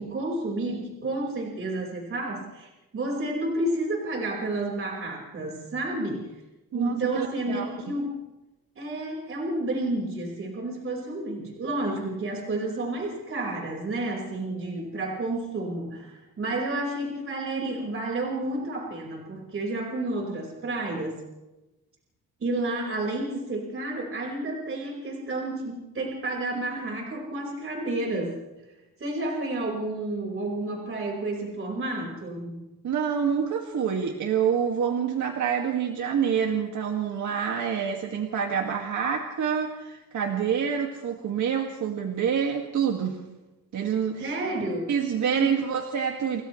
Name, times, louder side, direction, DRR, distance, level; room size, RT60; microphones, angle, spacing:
voice 1, 0.0-6.4 6.7-8.1 8.7-21.2 22.4-28.4 29.0-32.6 44.2-44.9 45.3-45.6, right 2 dB, 40° right, -1 dB, 5.1 m, -30 dB
voice 2, 6.7-7.7 32.8-43.2 43.7-44.4 44.9-46.4, right 7 dB, 55° right, 2 dB, 2.2 m, -27 dB
29.0 x 29.0 x 3.3 m, 1.1 s
cardioid pair, 140°, 35 cm